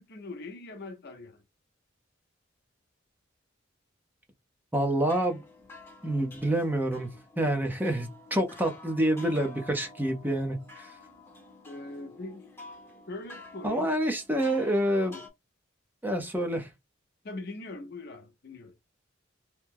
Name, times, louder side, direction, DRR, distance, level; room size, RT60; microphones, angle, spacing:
voice 1, 0.0-1.4 11.7-12.5 13.1-13.9 15.0-15.2 17.2-18.7, left 2 dB, 55° left, 0.7 m, -41 dB
voice 2, 4.7-5.4 6.0-7.1 7.4-10.9 13.6-15.1 16.0-16.7, right 1 dB, 10° right, 0.5 m, -27 dB
sound 1, 5.1-15.3, left 2 dB, 10° left, 0.9 m, -50 dB
2.9 x 2.0 x 3.4 m
head